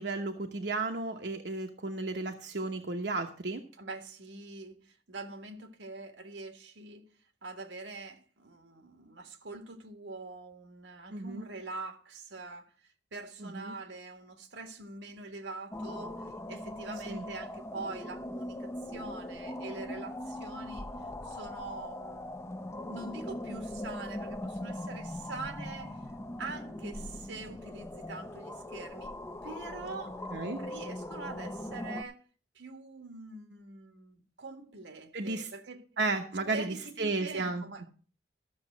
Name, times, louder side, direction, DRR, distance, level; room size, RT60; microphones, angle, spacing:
voice 1, 0.0-3.6 11.1-11.5 13.4-13.7 17.1-17.2 30.3-30.6 35.1-35.5 36.0-37.6, right 3 dB, 65° right, 1.0 m, -33 dB
voice 2, 3.7-7.1 7.4-20.9 21.2-22.3 22.6-26.0 26.4-29.1 29.4-30.3 30.6-32.2 32.5-35.9 36.4-37.9, right 3 dB, 85° right, 1.7 m, -44 dB
sound 1, 15.7-32.0, left 1 dB, 15° left, 0.6 m, -40 dB
13.0 x 7.0 x 6.2 m
head